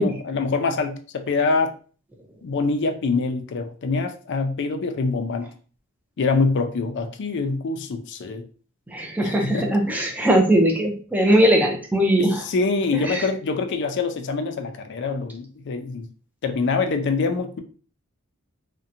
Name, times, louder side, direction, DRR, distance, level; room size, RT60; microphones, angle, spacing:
voice 1, 0.0-1.7 2.4-5.5 6.2-8.4 9.2-9.8 12.2-16.1 16.4-17.6, left 4 dB, 55° left, 6 dB, 0.4 m, -25 dB
voice 2, 8.9-12.4 13.0-13.3, right 1 dB, 10° right, 1 dB, 0.4 m, -20 dB
2.7 x 2.1 x 2.5 m, 0.40 s
head